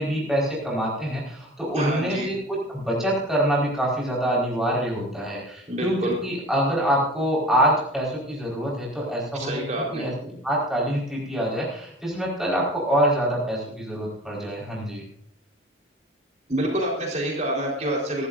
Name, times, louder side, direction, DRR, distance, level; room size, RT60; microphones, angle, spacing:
voice 1, 0.0-9.6 9.9-15.0, right 1 dB, ahead, -5 dB, 4.6 m, -25 dB
voice 2, 1.7-2.3 5.7-6.1 9.3-10.1 16.5-18.3, right 1 dB, 40° right, -2 dB, 4.1 m, -27 dB
24.5 x 13.0 x 2.6 m, 0.70 s
head